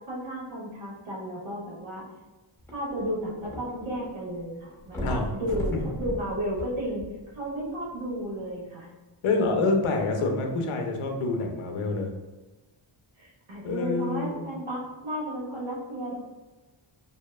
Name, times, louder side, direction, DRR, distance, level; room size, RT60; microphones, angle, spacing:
voice 1, 0.1-2.0 2.7-7.0 7.3-8.9 13.1-16.1, equal, 65° right, -5 dB, 1.1 m, -33 dB
sound 1, 2.6-4.1 4.4-4.5 4.9-7.5 8.2-8.3, left 1 dB, 5° left, 0.3 m, -35 dB
voice 2, 9.2-12.1 13.6-14.5, left 3 dB, 80° left, 3 dB, 0.6 m, -27 dB
2.7 x 2.1 x 2.3 m, 1.2 s
wide cardioid pair, 160°, 50 cm